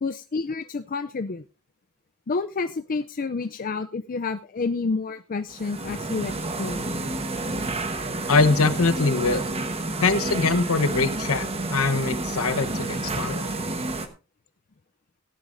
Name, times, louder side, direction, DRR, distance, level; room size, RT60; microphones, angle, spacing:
voice 1, 0.0-1.4 2.3-6.3 6.6-6.9, left 4 dB, 40° left, 8 dB, 0.5 m, -29 dB
sound 1, 5.5-14.1, right 2 dB, 30° right, 1.2 m, -30 dB
voice 2, 8.3-9.4 10.0-13.5, left 3 dB, 65° left, 11 dB, 1.0 m, -23 dB
17.5 x 10.5 x 2.6 m, 0.31 s
head